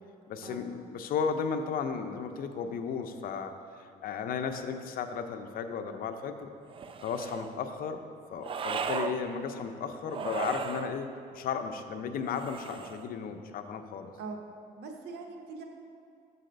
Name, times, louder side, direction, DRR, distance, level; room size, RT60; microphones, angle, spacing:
voice 1, 0.3-6.5 7.0-14.1, left 6 dB, 60° left, 7 dB, 0.6 m, -35 dB
sound 1, 6.7-7.5 8.4-9.2 10.0-10.9 12.3-13.1, right 6 dB, 30° right, 0.4 m, -36 dB
voice 2, 14.8-15.6, right 4 dB, 75° right, 2 dB, 1.0 m, -41 dB
7.6 x 4.1 x 5.2 m, 2.5 s
cardioid pair, 110°, 17 cm